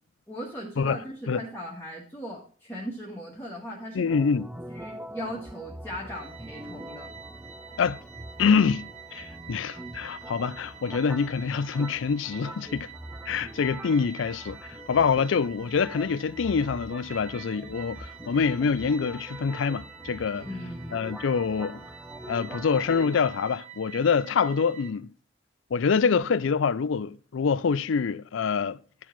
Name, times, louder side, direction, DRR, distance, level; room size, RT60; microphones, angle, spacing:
voice 1, 0.3-4.1 4.7-7.1 20.3-21.0, equal, 10° left, 1.5 m, -38 dB
voice 2, 3.9-4.5 7.8-8.0 8.4-12.9 13.3-20.4 20.9-21.8 22.3-25.1 25.7-28.8, left 5 dB, 80° left, 0.4 m, -25 dB
sound 1, 4.1-23.2, right 1 dB, 10° right, 0.7 m, -43 dB
sound 2, 6.1-24.9, right 9 dB, 40° right, 0.9 m, -47 dB
10.5 x 4.6 x 5.8 m
head